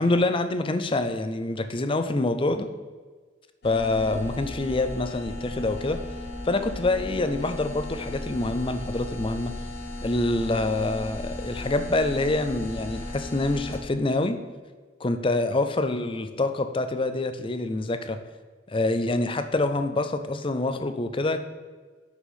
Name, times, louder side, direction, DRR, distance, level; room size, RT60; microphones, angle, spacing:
voice 1, 0.0-2.7 3.6-6.0 6.5-9.5 10.0-14.4 15.0-18.2 18.7-21.4, left 2 dB, 30° left, 9 dB, 0.5 m, -26 dB
sound 1, 3.6-13.8, left 1 dB, 60° left, 1.2 m, -36 dB
6.0 x 5.9 x 5.6 m, 1.4 s
head